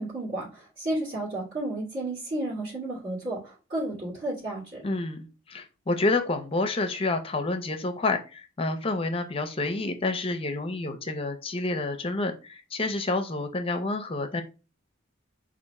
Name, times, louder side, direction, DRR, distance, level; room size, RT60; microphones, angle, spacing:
voice 1, 0.0-4.8, right 1 dB, 50° right, -9 dB, 2.3 m, -32 dB
voice 2, 4.8-14.4, left 2 dB, 25° left, 7 dB, 0.5 m, -29 dB
4.1 x 2.5 x 4.6 m, 0.32 s
head